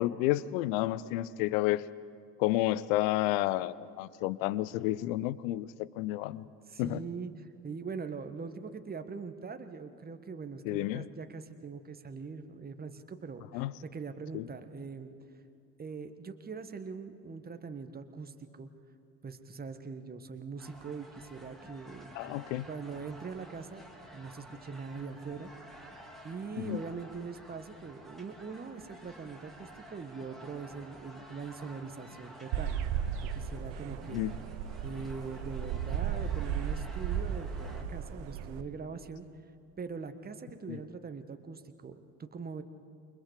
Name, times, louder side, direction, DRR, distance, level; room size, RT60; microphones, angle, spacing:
voice 1, 0.0-1.8 2.4-5.7 6.0-6.4 6.8-7.0 10.7-11.1 13.5-13.7 14.3-14.4 22.1-22.7 26.6-26.8 34.1-34.3 40.7-40.8, left 16 dB, 60° left, 20 dB, 0.7 m, -30 dB
voice 2, 6.7-15.1 15.8-18.7 19.2-23.8 24.1-25.5 25.8-25.9 26.2-32.8 33.3-34.2 34.8-39.3 39.8-42.6, right 5 dB, 20° right, 9 dB, 1.5 m, -42 dB
sound 1, 20.6-37.8, right 1 dB, ahead, 3.2 m, -52 dB
sound 2, 32.5-38.6, right 8 dB, 60° right, 1.2 m, -35 dB
28.5 x 23.0 x 4.9 m, 2.4 s
figure-of-eight pair, 65°, 47 cm